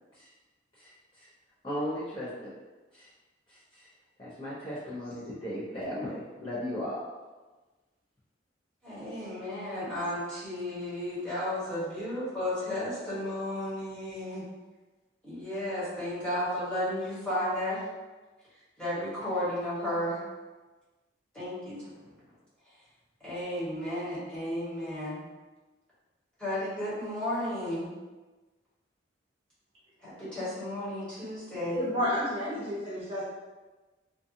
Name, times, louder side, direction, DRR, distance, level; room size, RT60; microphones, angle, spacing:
voice 1, 1.6-2.5 2.9-3.0 3.5-3.9 4.2-7.0, equal, 30° left, -10 dB, 0.6 m, -36 dB
voice 2, 8.8-14.4 15.2-17.9 18.8-20.2 21.3-22.1 23.2-25.2 26.4-27.9 30.0-31.8, left 1 dB, 5° left, -12 dB, 1.1 m, -33 dB
voice 3, 31.7-33.2, equal, 30° right, -8 dB, 0.7 m, -30 dB
2.5 x 2.3 x 2.6 m, 1.2 s
head